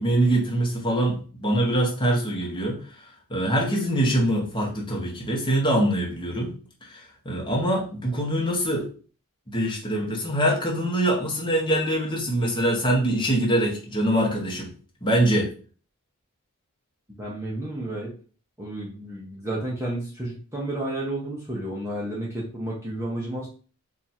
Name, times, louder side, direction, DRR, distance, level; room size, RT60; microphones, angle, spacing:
voice 1, 0.0-6.5 6.8-8.9 9.5-14.7 15.0-15.5, right 1 dB, 20° left, -2 dB, 1.0 m, -24 dB
voice 2, 17.2-18.1 18.6-23.5, right 1 dB, 10° right, -5 dB, 0.7 m, -31 dB
2.8 x 2.4 x 4.1 m, 0.39 s
head